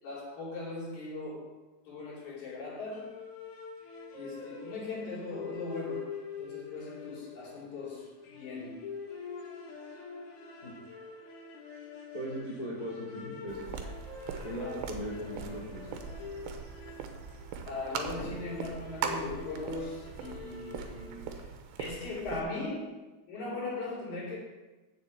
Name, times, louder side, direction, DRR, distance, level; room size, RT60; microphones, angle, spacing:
voice 1, 0.0-1.6 1.9-3.2 4.1-8.9 14.4-14.7 17.6-21.5 21.8-24.4, left 2 dB, 45° left, -4 dB, 3.8 m, -39 dB
sound 1, 2.9-21.4, left 6 dB, 65° left, 3.3 m, -45 dB
voice 2, 12.1-13.8 14.4-16.0, equal, 15° left, -7 dB, 1.9 m, -38 dB
sound 2, 13.5-22.4, right 6 dB, 75° right, 2.3 m, -40 dB
7.2 x 6.7 x 7.8 m, 1.1 s
omnidirectional pair, 5.1 m